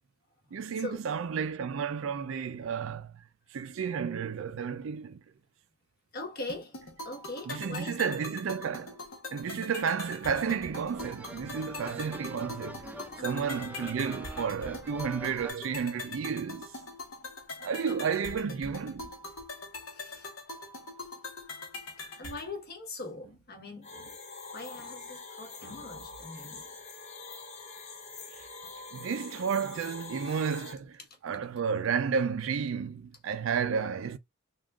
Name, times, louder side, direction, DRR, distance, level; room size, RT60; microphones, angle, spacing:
voice 1, 0.5-3.2 3.5-5.2 7.5-9.0 9.3-12.9 13.2-16.7 17.6-19.1 25.6-25.8 26.5-26.6 28.3-28.5 28.9-34.2, right 6 dB, 70° right, 0.4 m, -32 dB
voice 2, 6.1-6.8 7.0-8.1 13.2-13.4 17.8-18.0 19.9-20.3 22.0-23.9 24.5-26.6, left 2 dB, 50° left, 1.1 m, -41 dB
sound 1, 6.5-22.5, left 3 dB, 75° left, 1.0 m, -43 dB
sound 2, 10.3-15.5, right 1 dB, 5° right, 0.4 m, -45 dB
sound 3, 23.8-30.7, left 4 dB, 35° left, 0.7 m, -45 dB
3.6 x 2.4 x 2.2 m
head